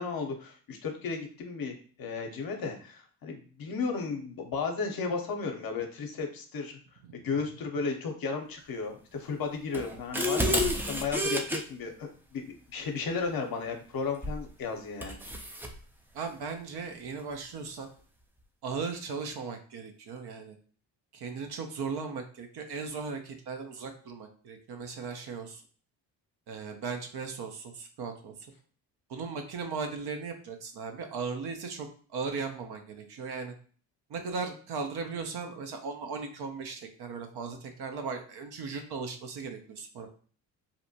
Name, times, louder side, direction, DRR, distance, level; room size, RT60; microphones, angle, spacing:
voice 1, 0.0-6.8 7.1-15.2, left 4 dB, 45° left, 4 dB, 0.7 m, -34 dB
sound 1, 9.7-11.6 14.2-14.5 15.0-15.7, equal, 5° right, 0.3 m, -29 dB
voice 2, 16.1-17.9 18.6-20.6 21.1-25.6 26.5-28.3 29.1-33.5 34.1-40.1, right 5 dB, 55° right, 5 dB, 0.7 m, -37 dB
2.7 x 2.1 x 2.7 m, 0.43 s
hypercardioid pair, 50°, 48 cm